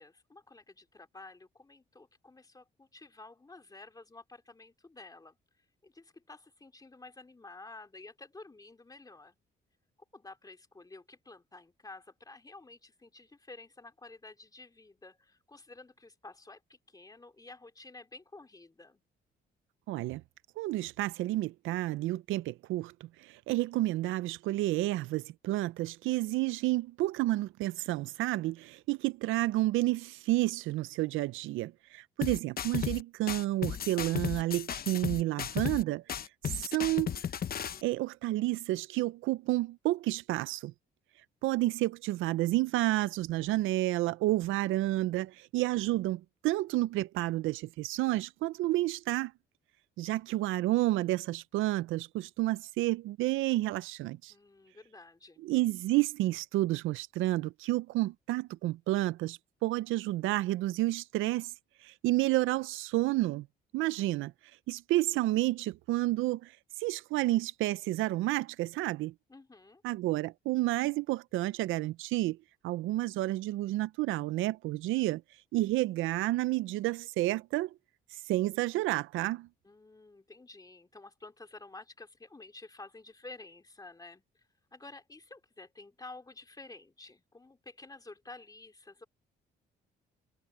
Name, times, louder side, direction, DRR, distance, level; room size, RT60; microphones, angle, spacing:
voice 1, 0.0-5.4 5.8-9.4 10.1-19.0 54.3-55.5 69.3-69.8 79.6-84.4 84.7-89.1, left 3 dB, 20° left, 2.7 m, -51 dB
voice 2, 19.9-20.2 20.6-22.9 23.2-36.0 36.4-37.2 37.8-40.7 41.4-49.3 50.0-54.3 55.4-61.5 61.8-63.5 63.7-64.3 64.7-69.1 69.8-72.4 72.6-75.2 75.5-77.7 78.1-79.5, right 17 dB, 85° right, 0.4 m, -30 dB
sound 1, 32.2-33.0 33.3-35.8 36.1-37.8, left 9 dB, 50° left, 0.9 m, -35 dB
cardioid pair, 90°, 20 cm